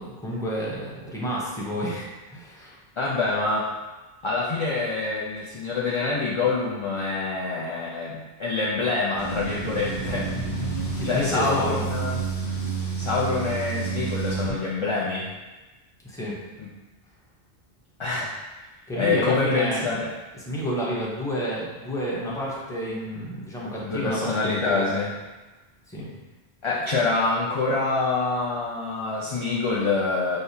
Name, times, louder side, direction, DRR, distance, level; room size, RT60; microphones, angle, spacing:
voice 1, 0.0-2.8 11.0-11.8 16.0-16.3 18.9-20.0 20.3-24.8 25.9-26.1, equal, 5° left, -6 dB, 0.7 m, -30 dB
voice 2, 3.0-3.7 4.2-10.3 11.0-12.2 13.0-15.3 16.6-16.7 18.0-18.3 19.0-20.1 23.8-25.1 26.6-30.4, left 3 dB, 45° left, -6 dB, 0.4 m, -26 dB
sound 1, 9.2-14.5, right 5 dB, 80° left, 1.3 m, -30 dB
6.4 x 2.2 x 2.7 m, 1.2 s
omnidirectional pair, 1.1 m